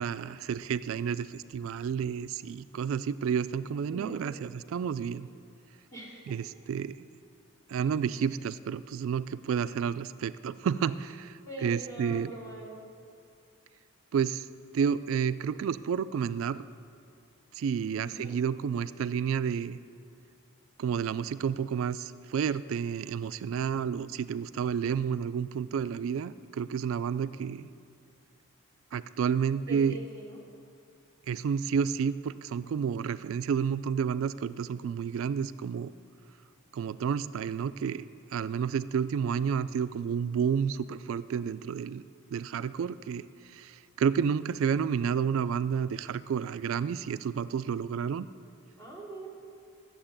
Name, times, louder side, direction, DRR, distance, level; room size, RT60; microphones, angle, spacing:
voice 1, 0.0-5.3 6.3-7.1 7.7-12.3 14.1-14.5 14.7-16.6 17.5-19.8 20.8-27.7 28.9-30.0 31.3-35.9 36.7-42.0 42.3-48.3, right 7 dB, 75° right, 15 dB, 0.3 m, -30 dB
voice 2, 3.9-4.2 5.9-6.2 11.4-12.8 18.0-18.4 29.7-30.4 48.8-49.3, right 2 dB, 15° left, -7 dB, 3.4 m, -42 dB
12.0 x 7.2 x 8.8 m, 2.4 s
head